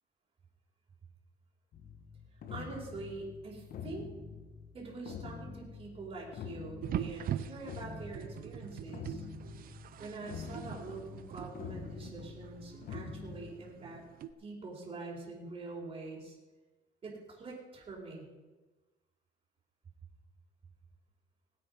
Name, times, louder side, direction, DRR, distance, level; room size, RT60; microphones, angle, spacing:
sound 1, 1.7-13.5, left 6 dB, 55° left, 1.5 m, -46 dB
voice 1, 2.5-4.1 4.7-9.3 10.0-14.0 14.4-16.4 17.0-18.3, right 3 dB, 35° right, -4 dB, 4.4 m, -45 dB
sound 2, 6.8-14.3, right 10 dB, 60° right, 0.8 m, -42 dB
18.5 x 8.6 x 5.4 m, 1.2 s
cardioid pair, 110°, 17 cm